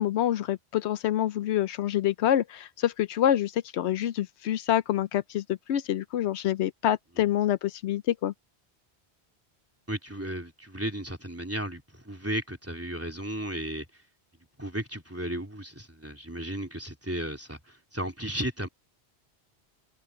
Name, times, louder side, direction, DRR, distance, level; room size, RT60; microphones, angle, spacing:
voice 1, 0.0-8.3, left 11 dB, 80° left, 0.9 m, -27 dB
voice 2, 9.9-13.8 14.6-18.7, right 1 dB, 10° right, 3.2 m, -34 dB
omnidirectional pair, 1.1 m